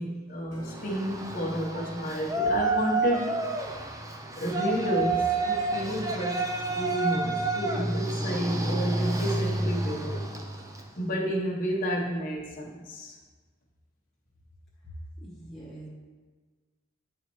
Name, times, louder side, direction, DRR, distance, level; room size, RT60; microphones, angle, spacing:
voice 1, 0.0-3.3 4.4-6.5 6.7-10.2 11.0-13.2, equal, 40° left, -5 dB, 1.0 m, -30 dB
Piano, 0.5-6.7, right 2 dB, 70° right, 1.2 m, -51 dB
Yell, 0.7-10.9, right 3 dB, 15° right, 0.4 m, -30 dB
voice 2, 14.8-15.9, right 1 dB, ahead, -7 dB, 1.6 m, -43 dB
8.3 x 4.2 x 3.1 m, 1.4 s
head